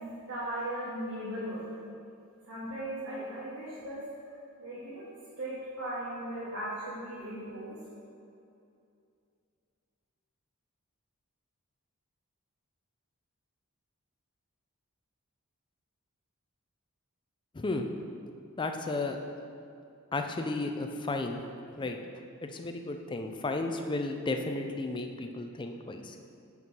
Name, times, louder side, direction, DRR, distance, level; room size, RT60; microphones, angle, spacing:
voice 1, 0.0-1.6 2.4-4.3 4.6-5.0 5.4-7.8, right 1 dB, 85° right, -11 dB, 1.7 m, -38 dB
voice 2, 17.5-17.9 18.6-19.2 20.1-21.5 21.8-22.0 22.5-26.2, left 2 dB, 20° left, 5 dB, 0.4 m, -33 dB
5.9 x 4.5 x 5.4 m, 2.5 s
head